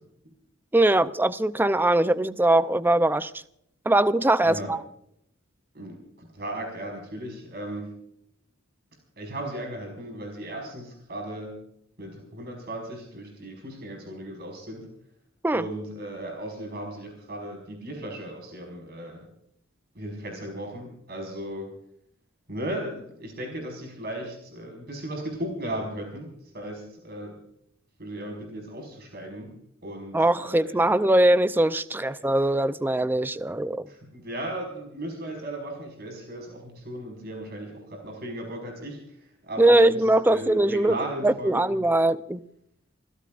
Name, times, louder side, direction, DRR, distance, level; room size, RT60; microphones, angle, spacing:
voice 1, 0.7-3.3 3.9-4.8 15.4-15.6 30.1-33.9 39.6-41.0 41.2-42.4, right 1 dB, 10° right, 0.5 m, -21 dB
voice 2, 4.4-4.7 5.7-7.9 9.2-11.6 12.0-14.9 15.5-19.3 19.9-21.7 22.5-27.4 28.0-29.5 29.8-31.0 32.0-32.1 32.8-32.9 33.9-39.2 39.4-41.7, right 1 dB, 50° right, 5.2 m, -36 dB
29.0 x 16.5 x 2.5 m
head